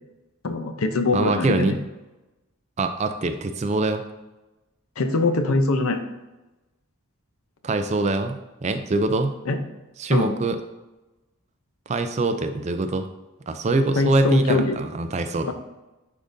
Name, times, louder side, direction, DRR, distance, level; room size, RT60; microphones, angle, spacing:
voice 1, 0.4-1.8 5.0-6.0 9.5-9.6 10.1-10.4 14.0-14.8 15.5-15.6, left 2 dB, 80° left, 8 dB, 0.6 m, -22 dB
voice 2, 1.1-1.8 2.8-4.0 7.6-9.4 10.0-10.6 11.9-13.1 13.5-15.5, right 2 dB, 30° right, 8 dB, 0.4 m, -24 dB
10.0 x 3.6 x 2.6 m, 1.1 s
head